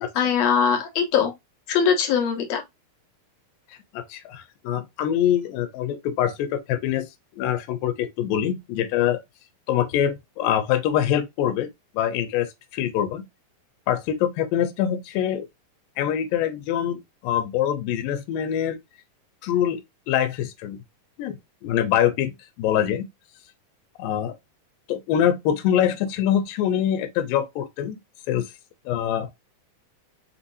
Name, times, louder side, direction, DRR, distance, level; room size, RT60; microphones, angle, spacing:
voice 1, 0.1-1.3 1.7-2.6, left 7 dB, 60° left, 1.9 m, -21 dB
voice 2, 3.7-7.1 7.4-9.2 9.7-11.7 11.9-13.2 13.9-15.5 16.0-18.8 19.4-19.8 20.1-20.8 21.2-23.1 24.0-24.4 24.9-28.0 28.3-28.4 28.9-29.3, left 10 dB, 80° left, 2.4 m, -24 dB
6.0 x 2.9 x 2.6 m
omnidirectional pair, 4.1 m